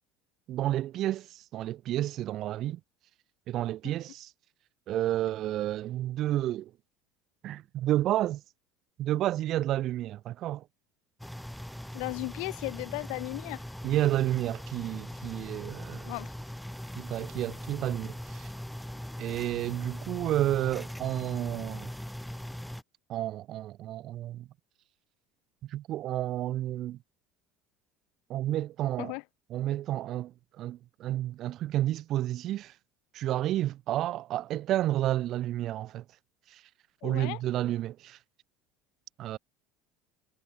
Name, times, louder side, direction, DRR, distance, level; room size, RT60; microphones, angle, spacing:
voice 1, 0.5-2.8 3.5-4.3 4.9-6.7 7.4-8.4 9.0-10.6 13.8-16.1 17.0-18.5 19.2-21.9 23.1-24.5 25.7-27.0 28.3-29.1 29.5-32.7 33.1-36.0 36.5-36.6 37.0-38.2 39.2-39.4, right 13 dB, 45° right, 1.0 m, -31 dB
sound 1, 11.2-22.8, equal, ahead, 4.3 m, -40 dB
voice 2, 11.9-13.6 16.1-16.3 29.0-29.2 37.0-37.4, left 34 dB, 60° left, 2.3 m, -36 dB
figure-of-eight pair, 65°, 0 cm